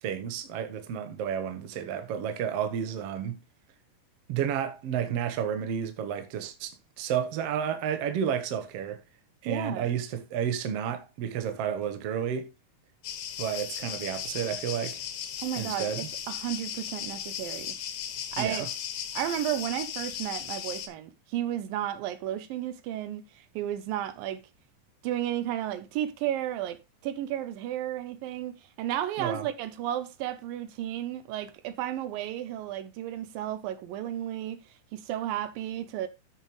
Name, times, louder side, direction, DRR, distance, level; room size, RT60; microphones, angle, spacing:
voice 1, 0.0-3.4 4.3-9.0 9.4-12.5 13.4-15.0 15.5-16.1 18.4-18.7 29.2-29.5, right 8 dB, 60° right, 1.8 m, -31 dB
voice 2, 9.5-9.9 15.4-17.8 18.3-18.7 19.2-24.4 25.0-36.1, right 12 dB, 80° right, 2.4 m, -33 dB
sound 1, 13.0-20.9, left 9 dB, 75° left, 2.9 m, -36 dB
12.5 x 6.6 x 3.1 m
omnidirectional pair, 4.2 m